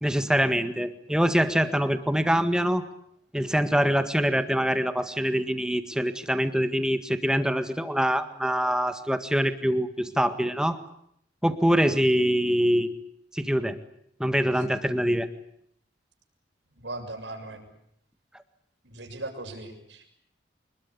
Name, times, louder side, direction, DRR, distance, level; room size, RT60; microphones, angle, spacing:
voice 1, 0.0-2.8 3.3-10.8 11.4-12.9 13.3-13.8 14.2-15.3, equal, 5° right, 9 dB, 1.7 m, -24 dB
voice 2, 16.8-17.7 18.8-20.1, right 2 dB, 80° right, 3 dB, 6.9 m, -38 dB
25.5 x 21.5 x 9.8 m, 0.72 s
head